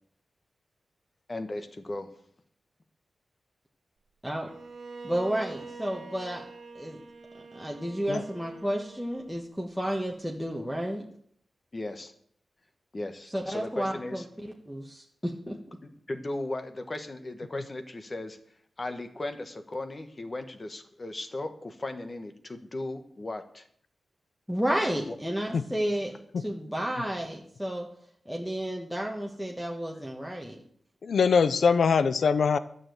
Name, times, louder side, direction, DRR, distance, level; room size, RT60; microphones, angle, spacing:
voice 1, 1.3-2.1 11.7-12.1 12.9-14.2 15.8-18.4 18.8-23.7 25.1-25.2, left 2 dB, 30° left, 8 dB, 1.3 m, -36 dB
Bowed string instrument, 4.5-9.5, right 4 dB, 60° right, 1.7 m, -45 dB
voice 2, 5.0-6.4 6.7-7.0 7.3-11.0 13.3-14.2 14.7-15.6 24.5-26.1 26.4-27.9 28.2-30.6, equal, ahead, -1 dB, 1.4 m, -31 dB
voice 3, 31.0-32.6, left 5 dB, 70° left, 14 dB, 0.7 m, -23 dB
12.0 x 6.8 x 7.8 m, 0.64 s
wide cardioid pair, 110°, 0 cm